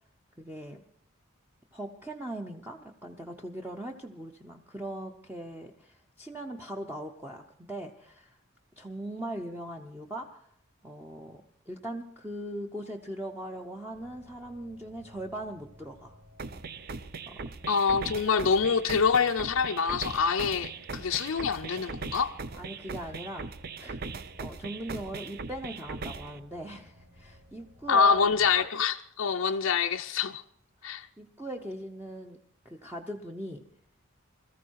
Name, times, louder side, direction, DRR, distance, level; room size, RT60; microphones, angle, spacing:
voice 1, 0.4-0.8 1.7-8.4 8.8-10.5 10.8-16.2 17.3-17.4 22.6-23.5 23.8-24.0 24.4-28.2 31.2-32.4 32.6-33.7, right 1 dB, 10° right, 0.7 m, -40 dB
sound 1, 13.9-28.6, left 1 dB, 65° right, 2.8 m, -57 dB
sound 2, 16.4-26.4, right 4 dB, 45° right, 0.6 m, -40 dB
voice 2, 17.7-22.3 27.9-30.4 30.8-31.1, left 5 dB, 75° left, 0.6 m, -26 dB
21.0 x 14.0 x 4.7 m
head